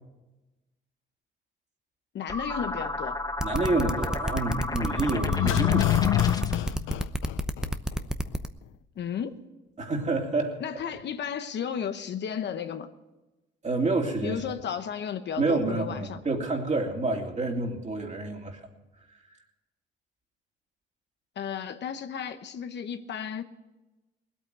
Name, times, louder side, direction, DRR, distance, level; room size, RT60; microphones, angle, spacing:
voice 1, 2.1-3.2 9.0-9.4 10.6-12.9 14.2-16.2 21.4-23.4, left 8 dB, 60° left, 9 dB, 1.1 m, -33 dB
sound 1, 2.3-6.7, left 2 dB, 20° left, 1.0 m, -33 dB
sound 2, 3.4-8.5, right 1 dB, 5° right, 0.8 m, -29 dB
voice 2, 3.4-6.4 9.8-10.6 13.6-14.4 15.4-18.6, right 2 dB, 35° right, 1 dB, 3.1 m, -28 dB
sound 3, 5.2-8.0 8.3-8.4, left 15 dB, 85° left, 0.4 m, -26 dB
19.5 x 8.8 x 8.1 m, 1.1 s
cardioid pair, 90°, 20 cm